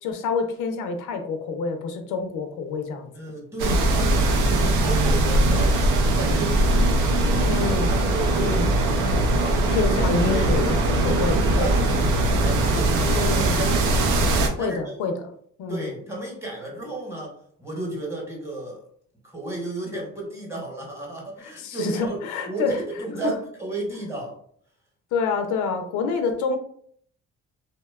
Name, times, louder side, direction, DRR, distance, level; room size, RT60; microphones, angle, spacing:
voice 1, 0.0-3.1 7.4-7.9 8.3-8.7 9.7-11.9 13.0-13.6 14.6-15.1 15.6-15.9 21.4-22.8 23.2-23.3 25.1-26.6, left 4 dB, 90° left, 6 dB, 0.5 m, -27 dB
voice 2, 3.1-7.5 7.9-8.5 9.4-10.0 10.2-10.5 11.1-13.8 14.6-15.0 15.7-18.8 19.2-22.2 22.5-24.4, right 2 dB, 10° right, -2 dB, 0.9 m, -33 dB
sound 1, 3.6-14.5, right 2 dB, 90° right, 0.5 m, -21 dB
2.7 x 2.1 x 2.2 m, 0.62 s
cardioid pair, 90°, 30 cm